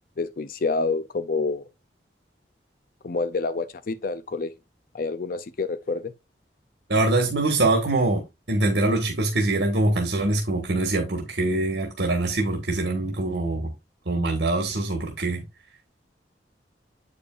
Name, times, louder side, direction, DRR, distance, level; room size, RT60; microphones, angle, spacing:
voice 1, 0.2-1.7 3.0-4.5 4.9-6.1, left 3 dB, 50° left, 0.5 m, -28 dB
voice 2, 6.9-13.7 14.0-15.4, right 2 dB, 70° right, 1.5 m, -24 dB
8.4 x 5.1 x 2.4 m
head